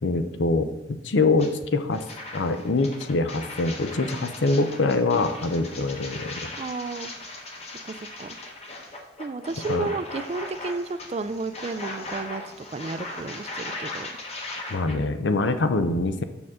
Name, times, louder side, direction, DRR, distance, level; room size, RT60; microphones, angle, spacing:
voice 1, 0.0-2.0 2.3-6.5 9.7-9.9 14.7-16.2, left 3 dB, 75° left, 9 dB, 0.6 m, -24 dB
sound 1, 1.4-1.5 1.9-15.0, left 2 dB, 35° left, 1.0 m, -38 dB
voice 2, 6.6-7.1 7.8-8.4 9.2-12.4 12.7-14.2 15.4-15.5, right 3 dB, 35° right, 11 dB, 0.3 m, -32 dB
6.9 x 6.4 x 3.7 m, 0.93 s
head